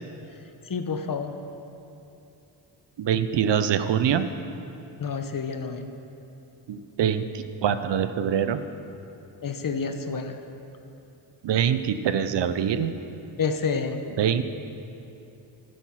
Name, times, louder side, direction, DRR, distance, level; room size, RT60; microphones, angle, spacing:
voice 1, 0.7-1.3 5.0-5.9 9.4-10.4 13.4-14.0, left 5 dB, 45° left, 7 dB, 1.0 m, -29 dB
voice 2, 3.0-4.3 6.7-7.2 7.6-8.6 11.4-12.9 14.2-14.4, right 8 dB, 65° right, 11 dB, 0.7 m, -24 dB
11.0 x 9.4 x 5.9 m, 2.9 s
cardioid pair, 70°, 47 cm